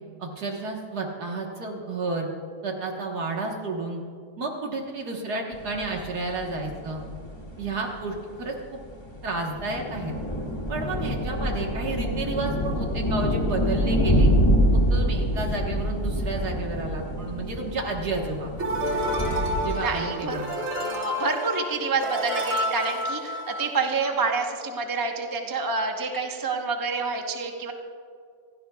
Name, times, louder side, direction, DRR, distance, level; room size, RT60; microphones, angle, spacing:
voice 1, 0.2-2.3 2.6-4.0 4.4-7.0 7.6-8.6 9.2-10.1 10.7-14.3 14.9-18.5 19.6-20.5, right 3 dB, 70° right, 0 dB, 1.9 m, -31 dB
sound 1, 5.5-19.7, equal, 15° left, 1.4 m, -26 dB
sound 2, 18.6-24.1, equal, 50° right, 2.4 m, -29 dB
voice 2, 19.7-20.4 20.8-27.7, right 4 dB, 15° right, 2 dB, 0.8 m, -28 dB
27.0 x 16.5 x 2.3 m, 2.3 s
omnidirectional pair, 1.8 m